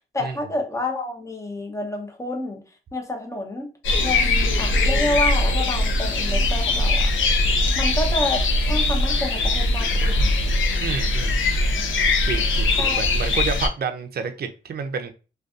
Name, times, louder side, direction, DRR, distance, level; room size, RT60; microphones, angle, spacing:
voice 1, 0.1-2.6 2.9-3.7 4.0-7.1 7.7-10.3 12.8-13.1, left 1 dB, 15° left, 0.8 m, -29 dB
sound 1, 3.8-13.7, left 2 dB, 80° left, 0.5 m, -21 dB
voice 2, 10.8-11.4 12.2-15.1, right 6 dB, 55° right, 0.5 m, -29 dB
2.5 x 2.3 x 2.4 m
cardioid pair, 55°, 20 cm